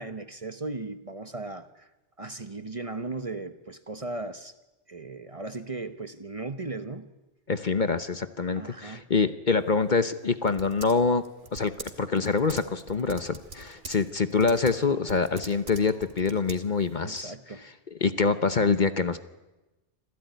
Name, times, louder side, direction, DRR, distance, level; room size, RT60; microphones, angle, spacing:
voice 1, 0.0-1.9 2.2-4.5 4.9-7.1 8.5-9.1 17.0-17.6, right 3 dB, 30° right, 10 dB, 1.1 m, -37 dB
voice 2, 7.5-11.2 11.5-17.3 18.0-19.2, left 4 dB, 45° left, 11 dB, 1.0 m, -25 dB
Typing, 9.5-17.0, right 3 dB, 85° right, 2.4 m, -45 dB
26.5 x 16.0 x 9.3 m, 1.0 s
omnidirectional pair, 1.2 m